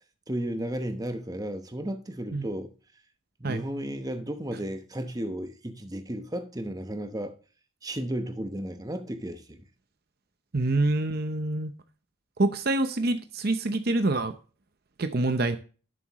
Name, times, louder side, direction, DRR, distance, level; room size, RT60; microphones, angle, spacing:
voice 1, 0.3-2.7 3.4-7.3 7.8-9.6, right 1 dB, 15° right, 0.9 m, -34 dB
voice 2, 10.5-11.7 12.4-14.3 15.0-15.6, right 2 dB, 45° right, 0.7 m, -26 dB
11.0 x 7.7 x 3.0 m
head